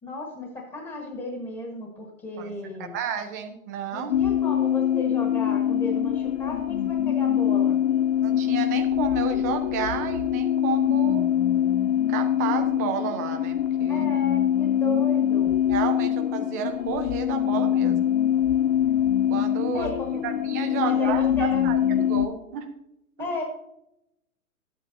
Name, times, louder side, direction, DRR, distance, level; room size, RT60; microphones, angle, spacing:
voice 1, 0.0-3.0 3.9-7.8 13.9-15.6 19.7-20.2 20.8-21.6 23.2-23.4, left 1 dB, 15° left, 1 dB, 1.3 m, -34 dB
voice 2, 2.8-4.2 8.2-11.3 12.1-14.0 15.7-18.1 19.3-19.9 20.2-22.7, right 6 dB, 15° right, 5 dB, 0.3 m, -31 dB
sound 1, 4.1-22.3, left 10 dB, 55° left, 0.5 m, -24 dB
11.0 x 8.5 x 2.6 m, 0.84 s
hypercardioid pair, 120°, 43 cm